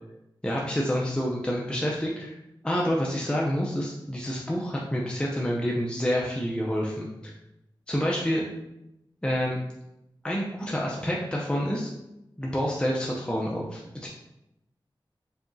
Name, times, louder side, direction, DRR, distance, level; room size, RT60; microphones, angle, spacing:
voice 1, 0.4-2.4 2.6-7.1 7.9-8.4 9.2-9.6 10.2-11.9 12.4-14.1, equal, 10° left, -3 dB, 0.5 m, -28 dB
4.8 x 2.8 x 2.6 m, 0.88 s
wide cardioid pair, 70°, 9 cm